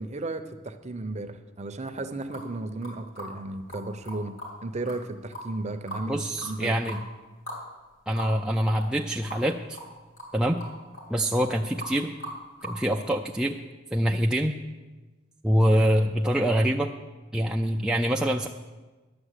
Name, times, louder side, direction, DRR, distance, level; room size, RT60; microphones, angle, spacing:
voice 1, 0.0-7.0, right 2 dB, 30° right, 8 dB, 0.7 m, -34 dB
sound 1, 2.3-2.5 2.8-3.3 3.7-4.5 4.9-5.0 5.3-6.1 6.4-6.5 6.9-7.0 7.5-7.6 7.9-8.0 8.2-8.3 8.8-9.0 9.3-9.4 9.7-9.9 10.2-10.3 10.6-11.1 11.3-11.5 11.8-11.9 12.2-12.8, equal, 65° left, 3.7 m, -39 dB
voice 2, 6.0-7.0 8.1-9.8 10.3-10.6 11.1-12.1 12.6-13.6 13.9-14.5 15.4-16.9 17.3-18.5, equal, 5° right, 0 dB, 0.3 m, -25 dB
11.0 x 7.0 x 8.2 m, 1.2 s
head